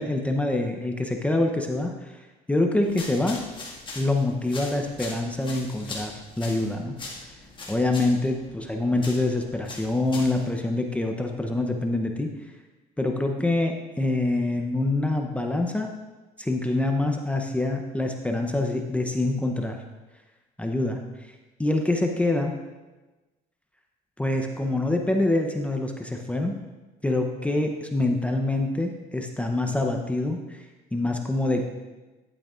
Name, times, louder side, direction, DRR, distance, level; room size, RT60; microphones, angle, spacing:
voice 1, 0.0-3.4 4.0-7.0 7.7-12.3 13.0-15.9 16.4-19.8 20.6-21.3 21.6-22.6 24.2-26.5 27.0-31.6, left 2 dB, 10° left, 3 dB, 0.7 m, -26 dB
sound 1, 2.8-10.5, left 3 dB, 30° left, 1.8 m, -41 dB
10.5 x 8.7 x 2.4 m, 1.2 s
cardioid pair, 110°, 17 cm